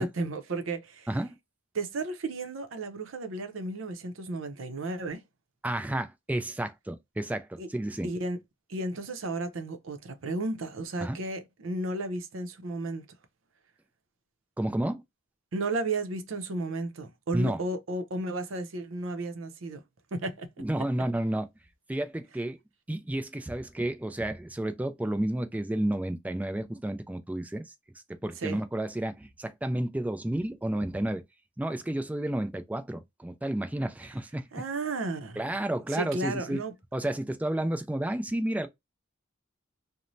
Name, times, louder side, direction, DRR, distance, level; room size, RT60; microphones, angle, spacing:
voice 1, 0.0-1.1 1.7-5.2 7.6-7.7 8.0-8.4 8.7-13.1 15.5-19.8 20.1-20.5 28.4-28.6 34.5-35.4 35.9-36.7, right 2 dB, 85° right, 0.6 m, -33 dB
voice 2, 5.6-8.1 11.0-11.2 14.6-15.0 17.3-17.6 20.6-21.5 21.9-22.6 22.9-27.7 28.2-31.2 31.6-34.5 35.4-36.6 36.9-38.7, right 1 dB, 10° right, 0.3 m, -31 dB
3.0 x 2.1 x 2.5 m
head